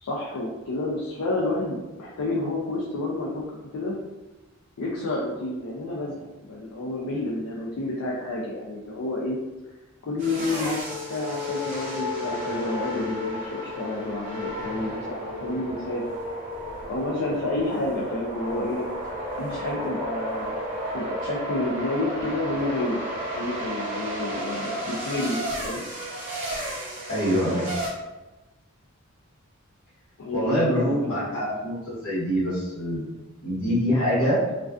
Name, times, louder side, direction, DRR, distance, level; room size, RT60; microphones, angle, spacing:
voice 1, 0.0-4.0 4.8-9.4 10.0-16.0 16.9-18.8 19.4-20.5 20.9-23.0 23.3-25.8 30.2-31.0 31.3-31.4, left 2 dB, 80° left, -4 dB, 0.4 m, -30 dB
sound 1, 10.2-27.9, equal, 35° right, 0.6 m, -33 dB
voice 2, 27.1-27.7 30.3-31.7 32.0-33.1 33.4-34.4, equal, 65° left, -7 dB, 1.1 m, -24 dB
2.3 x 2.3 x 2.3 m, 1.1 s
head